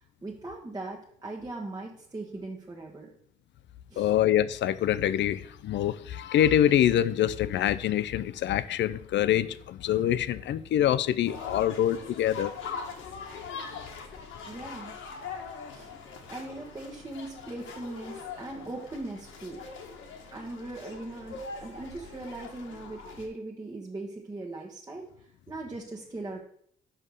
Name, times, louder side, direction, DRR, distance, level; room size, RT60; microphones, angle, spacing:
voice 1, 0.2-3.1 3.9-4.1 14.0-14.1 14.5-14.9 15.7-15.9 16.3-19.6 20.3-26.4, right 2 dB, 20° right, 1.2 m, -40 dB
voice 2, 4.0-12.5, left 11 dB, 65° left, 0.5 m, -25 dB
sound 1, 11.3-23.3, left 5 dB, 85° left, 1.5 m, -42 dB
5.6 x 5.4 x 6.3 m
cardioid pair, 90°, 20 cm